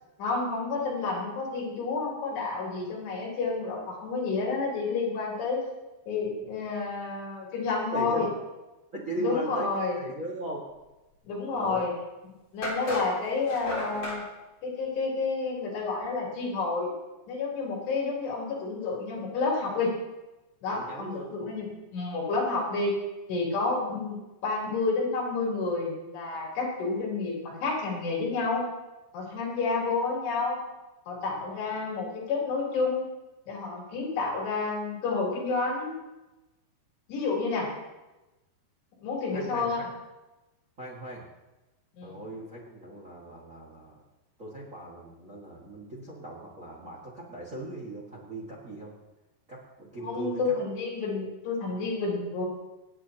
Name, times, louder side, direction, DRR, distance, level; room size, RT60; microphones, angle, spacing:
voice 1, 0.2-5.6 6.1-8.3 9.2-10.0 11.2-11.9 12.5-14.2 14.6-16.9 17.3-19.9 20.6-22.9 23.3-28.6 29.1-30.6 31.1-33.1 33.5-36.0 37.1-37.7 39.0-39.9 42.0-42.2 50.0-52.4, left 3 dB, 75° left, -3 dB, 5.8 m, -30 dB
voice 2, 7.9-8.3 8.9-9.7 10.0-10.7 11.5-11.9 20.7-21.6 39.3-39.9 40.8-41.2 42.0-44.0 44.4-48.9 49.5-50.5, right 1 dB, 65° right, -3 dB, 0.7 m, -38 dB
sound 1, 11.8-11.9 12.6-14.2, left 1 dB, 40° left, 4.0 m, -34 dB
26.5 x 8.9 x 2.9 m, 1.0 s
omnidirectional pair, 4.9 m